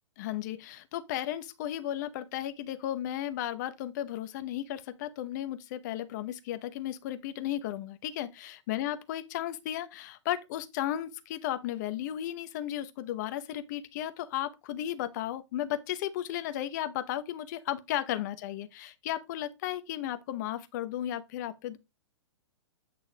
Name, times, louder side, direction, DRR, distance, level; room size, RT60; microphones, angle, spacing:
voice 1, 0.2-21.8, left 12 dB, 35° left, 0.8 m, -34 dB
8.5 x 3.7 x 4.8 m
figure-of-eight pair, 115°, 16 cm